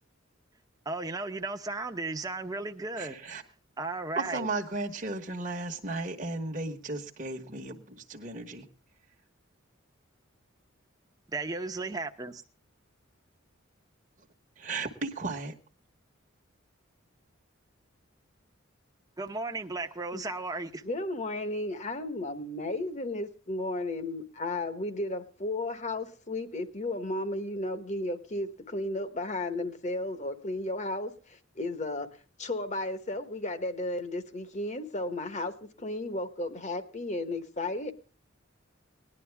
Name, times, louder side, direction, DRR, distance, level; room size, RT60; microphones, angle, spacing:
voice 1, 0.8-3.2 3.8-4.5 11.3-12.4 19.2-20.8, right 3 dB, 20° right, 0.9 m, -35 dB
voice 2, 3.0-3.4 4.2-8.6 14.6-15.5, right 3 dB, 40° right, 1.3 m, -35 dB
voice 3, 20.8-32.1 32.4-37.9, left 2 dB, 35° left, 1.2 m, -34 dB
19.0 x 11.0 x 3.4 m
head